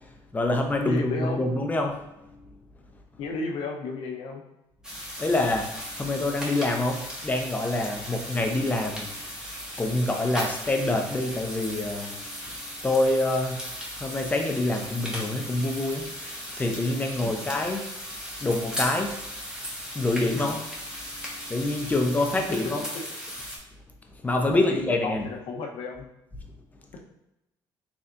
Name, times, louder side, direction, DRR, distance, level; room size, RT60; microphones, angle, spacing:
voice 1, 0.3-2.0 5.2-9.1 9.8-12.1 12.8-13.6 14.0-16.1 16.5-17.9 18.4-19.2 19.9-20.6 21.5-22.8 24.2-25.3, left 2 dB, 15° left, 3 dB, 0.6 m, -26 dB
voice 2, 0.8-1.5 3.2-4.4 17.2-17.4 24.7-26.0, left 3 dB, 70° left, 1 dB, 0.8 m, -33 dB
sound 1, 4.8-23.6, equal, 5° right, 1.0 m, -37 dB
4.1 x 3.3 x 2.5 m, 0.91 s
cardioid pair, 110°, 10 cm